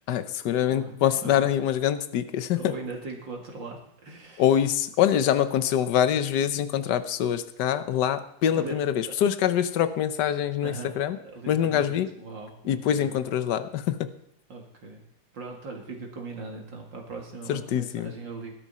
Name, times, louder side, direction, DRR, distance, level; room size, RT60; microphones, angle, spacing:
voice 1, 0.1-2.7 4.4-11.2 11.5-12.1 12.6-14.1 17.5-18.1, left 10 dB, 65° left, 11 dB, 1.4 m, -25 dB
voice 2, 0.6-1.5 2.5-4.4 5.1-5.2 8.5-8.8 10.6-11.0 11.3-13.2 14.5-15.0 15.3-18.5, right 3 dB, 70° right, 0 dB, 3.0 m, -39 dB
18.0 x 12.0 x 4.3 m, 0.73 s
omnidirectional pair, 2.1 m